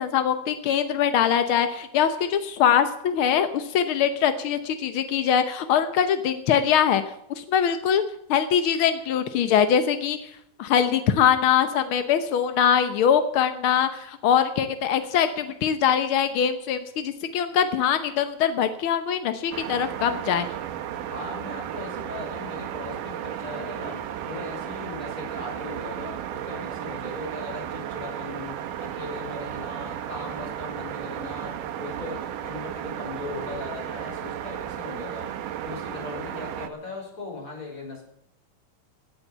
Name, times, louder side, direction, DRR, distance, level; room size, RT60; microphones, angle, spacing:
voice 1, 0.0-7.0 7.4-8.0 8.3-10.3 10.6-20.5, left 8 dB, 75° left, 10 dB, 1.2 m, -22 dB
sound 1, 19.5-36.7, right 10 dB, 85° right, 2.6 m, -34 dB
voice 2, 21.1-38.0, left 3 dB, 25° left, 0 dB, 5.6 m, -39 dB
17.0 x 8.9 x 6.8 m, 0.77 s
omnidirectional pair, 3.7 m